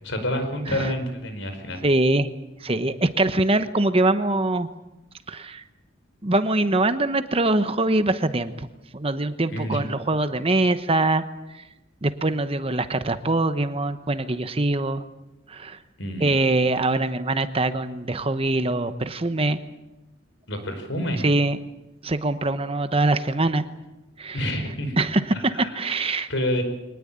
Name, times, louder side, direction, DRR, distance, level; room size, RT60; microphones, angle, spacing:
voice 1, 0.0-1.8 9.5-9.8 16.0-16.3 20.5-21.3 24.3-25.0 25.3-25.8 26.3-26.6, equal, 65° left, 7 dB, 5.1 m, -28 dB
voice 2, 1.8-2.3 2.6-4.7 5.3-5.6 6.2-8.7 8.9-11.2 12.0-15.0 15.5-15.8 16.2-19.6 21.2-21.6 22.0-23.7 24.2-24.4 25.0-26.3, right 2 dB, 30° right, 10 dB, 1.1 m, -23 dB
24.0 x 19.5 x 8.9 m, 0.97 s
head